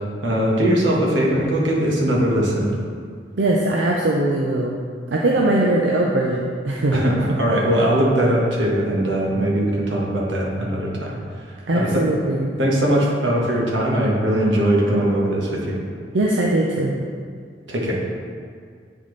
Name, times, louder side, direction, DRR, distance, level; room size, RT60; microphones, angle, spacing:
voice 1, 0.2-2.7 6.9-11.2 11.7-12.0 12.6-15.8 17.7-18.0, right 1 dB, 90° right, -3 dB, 1.3 m, -20 dB
voice 2, 3.3-4.8 5.1-7.1 11.7-12.5 16.1-17.0, right 1 dB, 70° right, -2 dB, 0.5 m, -20 dB
8.8 x 4.1 x 3.2 m, 2.1 s
head